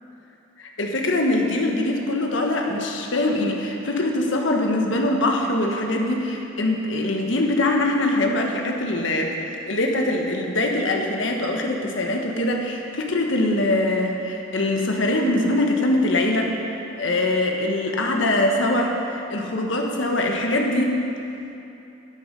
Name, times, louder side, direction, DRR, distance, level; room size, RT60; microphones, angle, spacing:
voice 1, 0.6-9.4 9.7-21.0, left 1 dB, 70° left, 2 dB, 1.3 m, -23 dB
12.0 x 8.6 x 5.2 m, 2.9 s
head